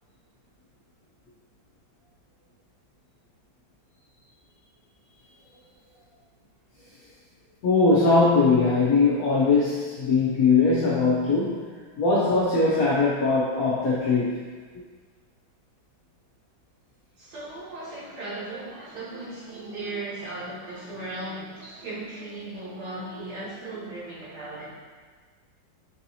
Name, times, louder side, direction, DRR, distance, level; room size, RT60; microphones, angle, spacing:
voice 1, 7.6-11.6 12.0-14.5, left 3 dB, 75° left, -7 dB, 0.8 m, -21 dB
voice 2, 17.2-24.7, right 2 dB, 60° right, -8 dB, 1.5 m, -37 dB
4.6 x 2.8 x 2.7 m, 1.5 s
omnidirectional pair, 2.2 m